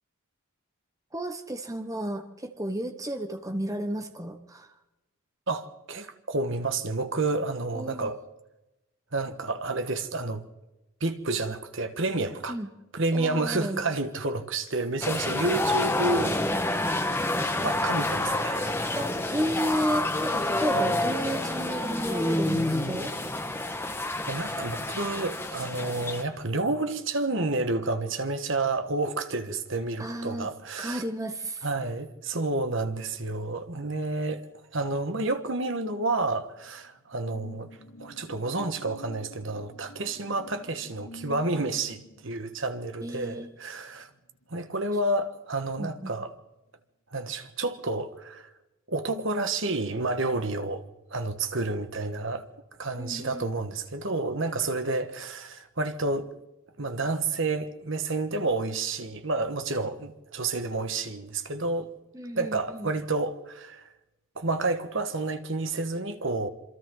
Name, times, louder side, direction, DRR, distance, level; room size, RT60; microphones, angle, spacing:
voice 1, 1.1-4.7 7.7-8.2 12.5-12.7 13.1-13.8 18.9-23.1 30.0-30.5 30.8-31.7 43.0-43.5 45.8-46.1 53.0-53.5 62.1-62.9, right 1 dB, 15° right, 1.3 m, -33 dB
voice 2, 5.5-8.2 9.1-10.4 11.0-12.6 12.9-16.4 17.5-18.7 20.7-21.0 24.3-31.0 31.6-34.4 34.7-37.7 38.0-44.1 44.5-46.3 47.1-48.5 48.9-50.8 51.1-52.4 52.8-56.3 56.8-61.9 62.4-63.8 64.3-66.5, right 2 dB, 60° right, 1.6 m, -30 dB
sound 1, 15.0-26.2, left 2 dB, 10° left, 1.5 m, -28 dB
sound 2, 36.2-45.2 45.6-45.8, equal, 80° left, 2.3 m, -49 dB
27.0 x 26.0 x 4.0 m
head